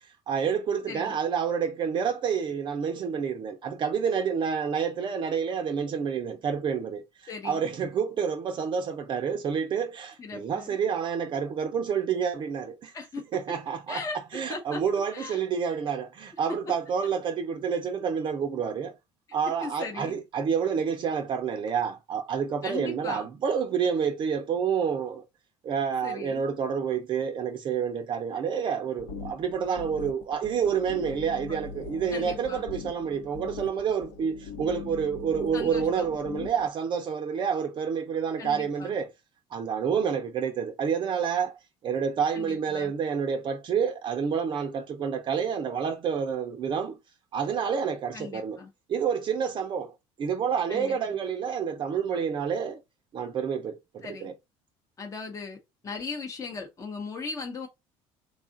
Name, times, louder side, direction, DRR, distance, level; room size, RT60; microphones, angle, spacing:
voice 1, 0.3-7.0 7.4-12.9 13.3-14.0 14.3-18.9 19.3-25.2 25.6-39.1 39.5-41.6 41.8-47.0 47.3-48.6 48.9-49.9 50.2-52.8 53.1-54.3, right 7 dB, 40° right, 0.6 m, -28 dB
voice 2, 0.9-1.2 7.3-7.6 10.2-10.8 12.9-13.2 13.9-14.2 14.5-14.8 15.1-15.4 19.6-20.2 22.6-23.3 26.0-26.4 31.5-31.6 32.1-32.7 35.5-36.1 38.4-38.9 42.3-42.9 48.1-48.7 50.7-51.0 54.0-54.3 55.0-55.6 55.8-57.7, left 4 dB, 25° left, 0.8 m, -38 dB
sound 1, 29.0-36.7, left 5 dB, 65° left, 0.9 m, -41 dB
3.6 x 2.4 x 3.7 m
cardioid pair, 115°, 12 cm